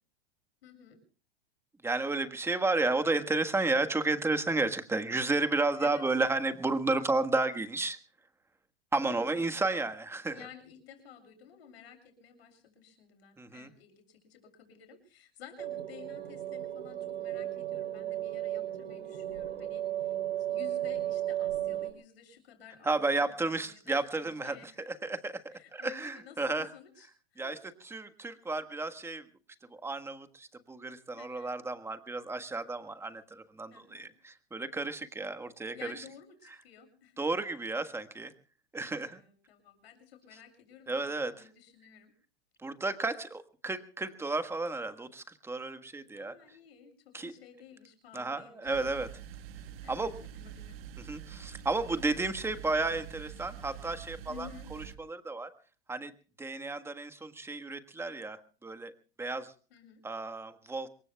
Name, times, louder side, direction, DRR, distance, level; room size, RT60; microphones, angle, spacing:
voice 1, 0.6-1.0 5.8-6.2 9.1-9.6 10.3-25.1 25.5-27.7 31.1-31.6 33.7-34.1 35.7-37.2 38.8-42.1 46.1-48.8 49.8-50.8 54.3-54.7 59.7-60.0, left 9 dB, 75° left, 7 dB, 7.3 m, -53 dB
voice 2, 1.8-8.0 8.9-10.4 13.4-13.7 22.8-24.6 24.9-26.7 27.4-27.6 27.8-29.2 29.8-35.7 37.2-38.3 38.7-39.2 40.9-41.3 42.6-46.3 47.1-47.3 48.1-49.1 49.9-50.1 51.1-55.5 55.9-56.1 56.4-58.9 59.2-59.5 60.0-60.9, right 3 dB, 10° right, 9 dB, 1.5 m, -32 dB
sound 1, 15.6-21.9, right 12 dB, 90° right, 3.3 m, -35 dB
sound 2, 48.7-55.0, right 9 dB, 65° right, 1.4 m, -46 dB
27.0 x 22.5 x 2.3 m, 0.37 s
hypercardioid pair, 120°, 31 cm